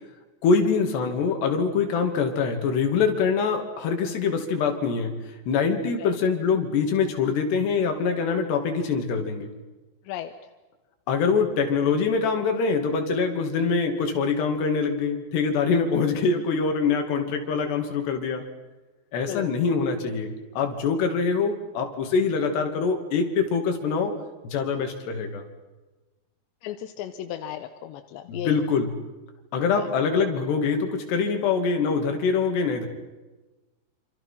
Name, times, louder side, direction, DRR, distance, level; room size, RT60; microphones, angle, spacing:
voice 1, 0.4-5.1 5.5-9.5 11.1-18.5 19.1-24.1 24.4-25.4 28.3-28.9 29.5-32.9, left 5 dB, 70° left, 4 dB, 4.8 m, -24 dB
voice 2, 26.6-28.6 29.7-29.9, left 11 dB, 90° left, 7 dB, 3.3 m, -35 dB
28.0 x 27.0 x 5.9 m, 1.2 s
omnidirectional pair, 5.0 m